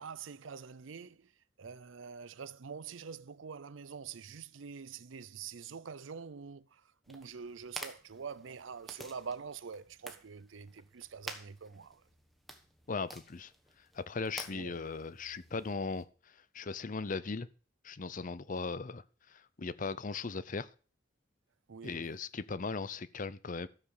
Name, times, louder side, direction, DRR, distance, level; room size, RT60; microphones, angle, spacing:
voice 1, 0.0-1.3 1.6-12.0 14.5-14.8 21.7-22.1, right 6 dB, 75° right, 0.6 m, -45 dB
sound 1, 7.0-16.0, right 1 dB, ahead, 1.4 m, -51 dB
voice 2, 12.9-13.5 13.8-17.5 17.8-20.7 21.8-23.7, left 4 dB, 45° left, 0.6 m, -38 dB
13.0 x 7.3 x 6.6 m
head